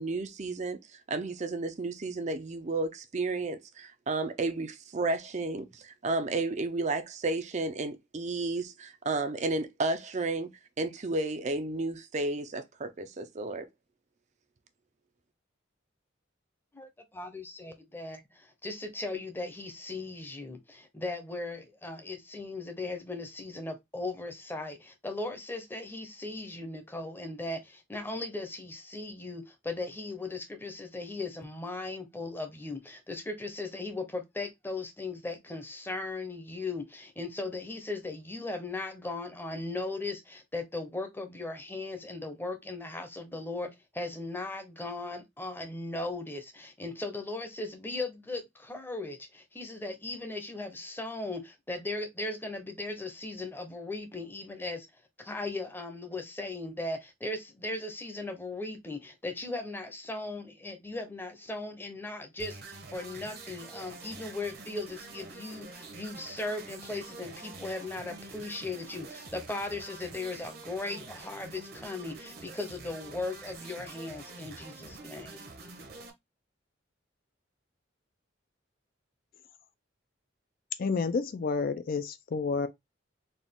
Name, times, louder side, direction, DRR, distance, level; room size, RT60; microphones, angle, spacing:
voice 1, 0.0-10.5 10.8-13.7, right 2 dB, 35° right, 0.5 m, -32 dB
voice 2, 16.7-54.9 55.2-75.5, left 2 dB, 10° left, 0.7 m, -38 dB
sound 1, 62.4-76.1, right 3 dB, 55° right, 0.9 m, -46 dB
voice 3, 80.8-82.7, left 4 dB, 50° left, 0.4 m, -30 dB
4.1 x 2.4 x 3.5 m
head